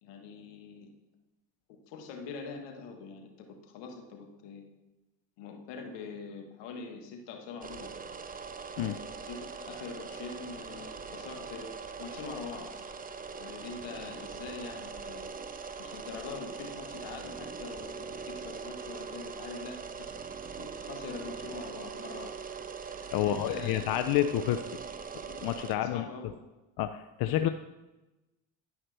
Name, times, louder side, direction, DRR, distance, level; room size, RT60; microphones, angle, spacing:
voice 1, 0.0-0.9 1.7-4.6 5.4-7.9 9.2-12.7 13.4-15.2 15.8-20.1 20.6-22.4 23.2-23.8 25.7-26.4, left 5 dB, 80° left, 4 dB, 1.4 m, -44 dB
sound 1, 7.6-25.7, right 5 dB, 20° right, 0.6 m, -42 dB
voice 2, 23.1-24.6 25.4-26.1 26.8-27.5, left 12 dB, 60° left, 10 dB, 0.5 m, -29 dB
10.5 x 5.6 x 3.3 m, 1.0 s
supercardioid pair, 75°, 42 cm